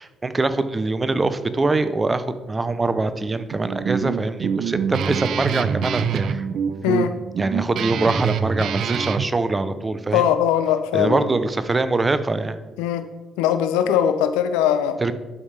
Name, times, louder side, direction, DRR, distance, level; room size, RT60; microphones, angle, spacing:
voice 1, 0.0-6.5 7.4-10.2 10.9-12.6 15.0-15.1, right 3 dB, 30° right, 12 dB, 0.7 m, -23 dB
Guitar, 3.5-9.3, right 7 dB, 65° right, 0.4 m, -25 dB
voice 2, 6.8-7.1 10.1-11.3 12.8-13.1 13.4-15.0, left 9 dB, 85° left, 10 dB, 0.5 m, -20 dB
11.0 x 5.2 x 3.4 m, 1.2 s
hypercardioid pair, 50°, 0 cm